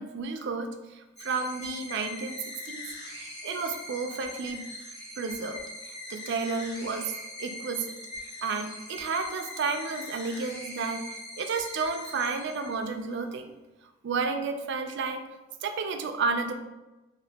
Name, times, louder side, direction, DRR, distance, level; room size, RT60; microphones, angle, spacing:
voice 1, 0.0-2.4 2.7-2.9 3.2-4.6 5.2-7.1 7.4-8.0 8.2-11.1 11.4-13.5 14.0-15.2 15.6-16.5, right 4 dB, 55° right, 6 dB, 0.3 m, -32 dB
sound 1, 1.2-13.1, left 1 dB, 50° left, 0.9 m, -42 dB
2.8 x 2.6 x 3.3 m, 1.1 s
head